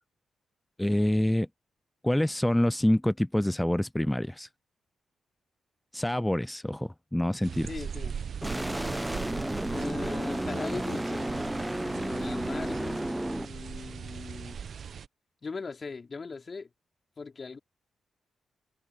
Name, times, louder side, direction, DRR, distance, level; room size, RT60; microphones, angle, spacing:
voice 1, 0.8-1.5 2.0-4.5 5.9-7.7, left 1 dB, 10° left, 0.3 m, -26 dB
sound 1, 7.4-15.1, right 7 dB, 65° right, 0.8 m, -40 dB
voice 2, 7.7-8.8 9.7-11.3 11.8-13.1 13.4-14.6 15.4-16.7 17.2-17.6, left 4 dB, 45° left, 3.8 m, -40 dB
sound 2, 8.4-13.5, right 1 dB, 10° right, 0.9 m, -32 dB
supercardioid pair, 45°, 0 cm